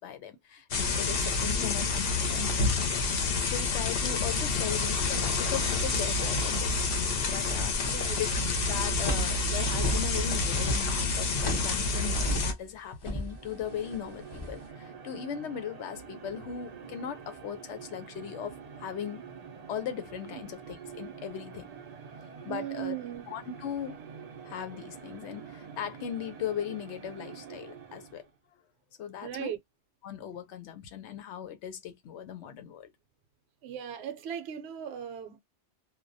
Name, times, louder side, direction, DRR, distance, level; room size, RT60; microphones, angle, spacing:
voice 1, 0.0-2.5 3.2-7.0 7.3-8.3 8.6-19.2 19.7-21.7 22.4-22.9 23.3-24.0 24.4-28.2 28.5-28.6 29.0-29.5 30.0-32.9, left 9 dB, 90° left, 0.9 m, -38 dB
sound 1, 0.7-12.5, left 3 dB, 65° left, 0.8 m, -28 dB
sound 2, 7.4-8.1 8.4-12.7 13.0-14.7, equal, 30° left, 0.5 m, -35 dB
voice 2, 7.9-8.2 20.3-20.5 22.5-23.4 29.2-29.6 33.6-35.4, right 10 dB, 75° right, 0.8 m, -38 dB
sound 3, 13.0-28.4, right 6 dB, 55° right, 0.4 m, -46 dB
2.2 x 2.1 x 2.5 m
omnidirectional pair, 1.1 m